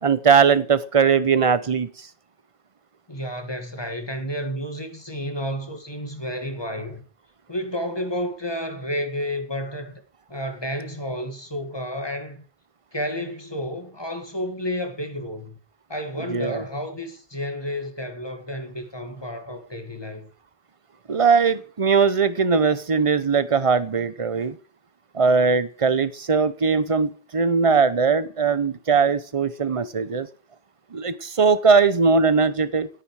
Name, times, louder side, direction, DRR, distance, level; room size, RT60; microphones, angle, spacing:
voice 1, 0.0-2.1 16.3-16.6 21.1-24.6 25.1-30.3 30.9-32.9, right 5 dB, 35° right, 0.9 m, -20 dB
voice 2, 3.1-7.0 7.5-9.9 10.3-12.4 12.9-15.6 15.9-20.3, equal, 25° left, 2.0 m, -31 dB
17.5 x 9.0 x 4.9 m
omnidirectional pair, 1.1 m